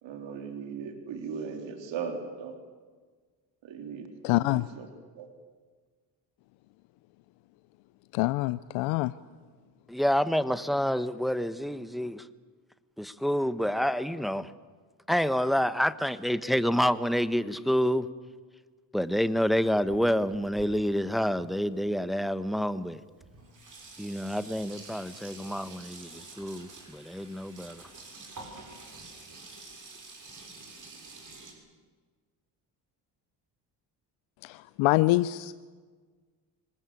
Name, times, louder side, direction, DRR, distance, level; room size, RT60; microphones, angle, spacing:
voice 1, 0.0-2.5 3.6-4.1 4.4-4.9 5.2-5.3, right 6 dB, 70° right, 5 dB, 3.5 m, -38 dB
voice 2, 4.2-4.7 8.1-9.1 34.4-35.6, left 19 dB, 85° left, 16 dB, 0.7 m, -25 dB
voice 3, 9.9-12.3 13.0-14.5 15.1-18.1 18.9-23.0 24.0-27.8, equal, ahead, 13 dB, 1.2 m, -28 dB
Sink (filling or washing), 19.0-22.1 22.9-23.0 23.2-31.5, right 3 dB, 40° right, 6.8 m, -48 dB
25.0 x 20.0 x 8.5 m, 1.5 s
supercardioid pair, 70°, 46 cm